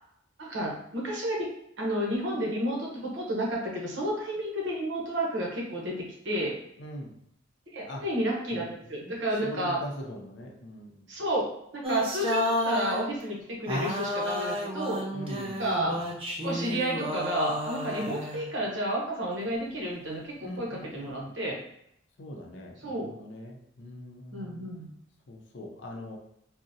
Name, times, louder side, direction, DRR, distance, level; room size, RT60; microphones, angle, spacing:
voice 1, 0.4-1.5 1.8-6.5 7.7-9.8 11.1-11.5 11.7-15.0 15.6-16.0 16.4-21.6 22.8-23.1 24.3-24.9, right 1 dB, 65° right, -2 dB, 0.8 m, -31 dB
voice 2, 6.8-7.1 7.9-8.0 8.5-11.1 15.1-16.0 18.0-18.2 20.4-21.3 22.2-24.7 25.3-26.2, left 1 dB, 65° left, 0 dB, 0.5 m, -42 dB
sound 1, 11.8-13.1 13.7-18.6, left 1 dB, 30° right, 0.4 m, -31 dB
3.7 x 2.0 x 2.6 m, 0.75 s
head